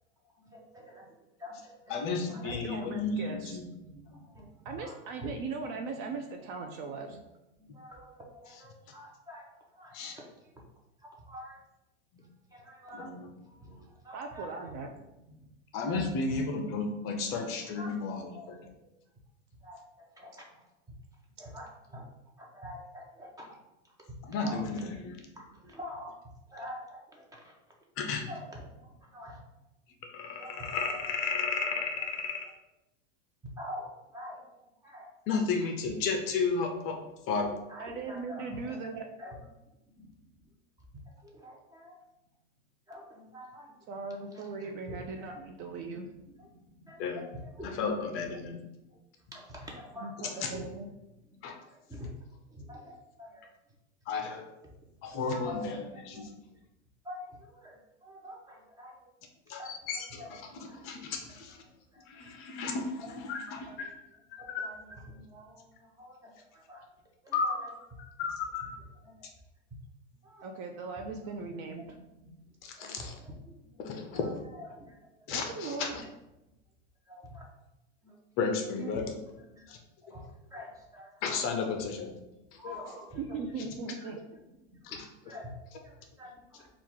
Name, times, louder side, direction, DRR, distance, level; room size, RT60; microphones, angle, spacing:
voice 1, 0.4-1.1 1.4-2.8 3.9-5.3 7.1-7.2 7.6-10.3 11.0-11.6 12.5-13.1 13.5-14.5 15.3-15.5 15.9-16.0 16.5-16.6 17.8-17.9 18.3-18.9 19.6-20.4 21.4-22.1 22.4-23.6 24.4-24.6 24.9-25.0 25.3-26.2 26.5-27.5 28.3-29.4 30.4-31.0 33.6-35.4 35.8-35.9 37.7-38.8 39.2-39.4 40.0-40.1 41.2-42.0 42.9-43.7 44.1-45.3 45.6-47.9 48.4-48.5 49.3-50.7 51.3-52.1 52.5-53.4 55.3-55.6 55.9-56.3 57.0-59.1 59.5-61.1 61.9-62.0 62.9-63.8 64.4-66.8 67.2-67.7 68.3-68.4 69.0-69.3 70.2-70.6 71.0-71.1 71.8-72.4 72.8-72.9 73.2-74.9 75.9-76.0 77.1-77.5 78.0-78.1 78.9-79.1 79.5-79.7 80.0-80.2 80.5-81.5 81.7-81.8 82.5-83.2 84.0-84.1 84.7-85.0 85.3-85.5 85.8-86.7, left 1 dB, 10° right, -1 dB, 0.7 m, -47 dB
voice 2, 1.9-3.7 7.7-7.8 9.9-10.2 12.1-12.2 12.9-13.3 15.7-18.6 24.2-25.2 28.0-28.3 30.1-32.5 35.3-37.0 37.3-37.5 47.0-47.2 47.8-48.6 50.4-50.5 51.4-51.5 54.1-54.4 55.0-56.3 59.5-61.6 62.1-63.9 64.3-64.7 67.3-67.6 68.2-68.6 72.6-73.1 73.8-74.3 75.3-76.0 78.4-79.1 79.7-79.8 81.2-82.1 82.6-82.8 84.8-85.1, left 4 dB, 40° left, 3 dB, 0.6 m, -33 dB
voice 3, 2.4-3.4 4.7-7.2 14.1-14.9 37.8-39.1 43.9-46.1 50.0-50.9 70.4-71.8 75.3-76.0 78.7-78.9 83.1-84.2, right 4 dB, 40° right, 4 dB, 0.4 m, -39 dB
3.5 x 2.4 x 4.5 m, 0.95 s
supercardioid pair, 135°, 35 cm